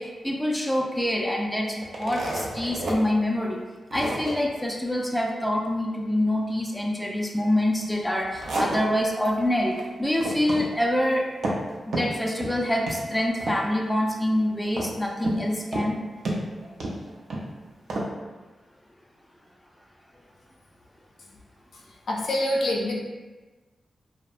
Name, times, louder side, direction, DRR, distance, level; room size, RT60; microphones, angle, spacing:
voice 1, 0.0-3.6 3.9-11.3 11.9-16.0, left 1 dB, 5° left, 0 dB, 0.3 m, -26 dB
sound 1, 1.8-3.0 3.4-3.5 3.9-4.4 8.0-9.3 9.6-9.9 10.1-10.7 11.0-11.7 11.9-12.6 12.9-13.1 13.4-13.9 14.8-15.4 15.7-15.9 16.3-17.5 17.9-18.1, right 1 dB, 80° right, 0.4 m, -30 dB
voice 2, 22.1-22.9, left 1 dB, 75° left, -2 dB, 0.4 m, -25 dB
2.6 x 2.0 x 2.4 m, 1.2 s
cardioid pair, 60°, 0 cm